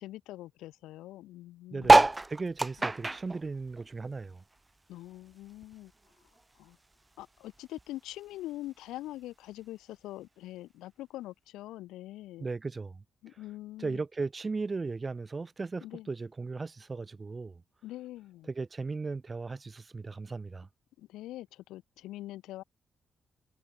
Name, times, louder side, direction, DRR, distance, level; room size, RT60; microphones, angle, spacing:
voice 1, 0.0-2.0 4.9-5.9 6.6-6.8 7.2-12.5 13.2-14.0 15.8-16.1 17.8-18.5 21.0-22.6, left 15 dB, 90° left, 1.7 m, -43 dB
voice 2, 1.7-4.4 12.4-13.0 13.8-17.6 18.5-20.7, right 4 dB, 40° right, 4.3 m, -37 dB
sound 1, 1.8-4.6 4.9-6.4 6.9-7.0 7.2-7.3 7.5-7.9 8.7-8.8, right 2 dB, 25° right, 0.4 m, -25 dB
supercardioid pair, 45°, 0 cm